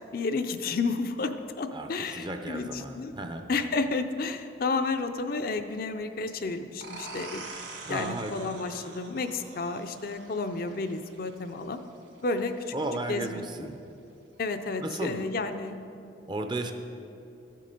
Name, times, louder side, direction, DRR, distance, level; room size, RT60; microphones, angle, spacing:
voice 1, 0.0-3.1 3.5-7.4 7.9-11.8 12.2-12.7 13.1-13.7 14.4-15.8, left 3 dB, 50° left, 7 dB, 0.5 m, -31 dB
voice 2, 1.7-3.5 7.9-8.6 12.7-13.8 14.8-15.3 16.3-16.7, right 2 dB, 25° right, 7 dB, 0.5 m, -34 dB
sound 1, 6.8-12.2, right 3 dB, 60° right, 1.8 m, -45 dB
13.0 x 7.5 x 5.2 m, 2.7 s
head